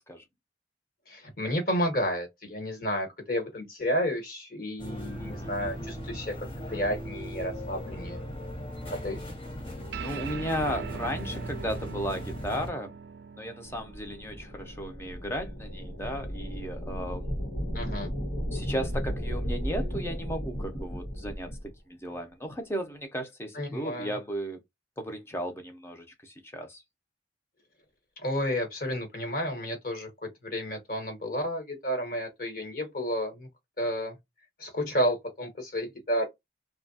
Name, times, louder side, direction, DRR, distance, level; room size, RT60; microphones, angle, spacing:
voice 1, 1.1-8.2 8.9-9.2 17.7-18.1 23.5-24.1 28.2-30.1 30.4-33.5 33.8-34.2 34.6-36.3, equal, 55° left, 1.4 m, -31 dB
sound 1, 4.8-12.7, equal, 30° left, 1.1 m, -38 dB
voice 2, 5.2-5.5 10.0-12.9 13.4-17.3 18.5-24.6 25.0-26.8, equal, 15° left, 0.7 m, -35 dB
sound 2, 9.9-16.7, right 5 dB, 75° right, 0.4 m, -43 dB
sound 3, 13.6-21.7, equal, 80° left, 1.3 m, -34 dB
2.8 x 2.3 x 2.7 m
head